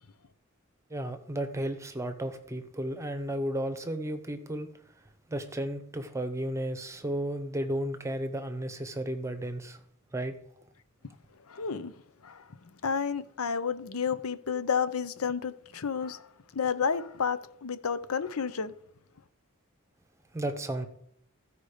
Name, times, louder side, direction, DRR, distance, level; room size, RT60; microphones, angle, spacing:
voice 1, 0.9-4.7 5.3-9.8 10.1-10.4 20.3-20.8, right 1 dB, 15° right, 0.9 m, -33 dB
voice 2, 11.5-11.9 12.2-12.4 12.8-16.3 16.5-18.7, left 6 dB, 75° left, 0.7 m, -31 dB
15.0 x 5.1 x 5.0 m
head